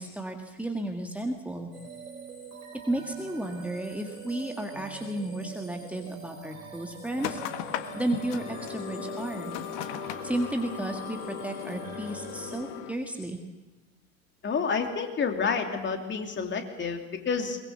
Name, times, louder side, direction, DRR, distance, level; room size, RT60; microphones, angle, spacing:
voice 1, 0.0-1.7 2.9-7.4 7.9-9.5 10.2-13.4, right 1 dB, 5° right, 3 dB, 1.8 m, -33 dB
sound 1, 1.7-12.6, right 6 dB, 70° right, 4.3 m, -44 dB
sound 2, 7.2-12.9, left 12 dB, 50° left, 1.6 m, -37 dB
voice 2, 14.4-17.6, left 5 dB, 25° left, 4 dB, 3.0 m, -29 dB
22.5 x 22.0 x 7.3 m, 1.1 s
figure-of-eight pair, 75°, 42 cm